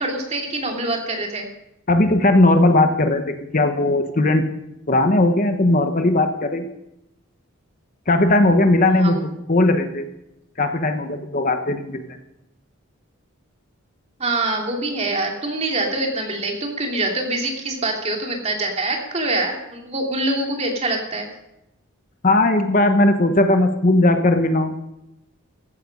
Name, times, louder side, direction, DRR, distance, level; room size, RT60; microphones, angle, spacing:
voice 1, 0.0-1.5 8.9-9.2 14.2-21.3, right 2 dB, 30° right, 1 dB, 2.8 m, -25 dB
voice 2, 1.9-4.4 4.9-6.7 8.1-10.0 10.6-12.2 22.2-24.8, left 2 dB, 40° left, 7 dB, 1.0 m, -18 dB
14.5 x 13.0 x 5.4 m, 0.86 s
head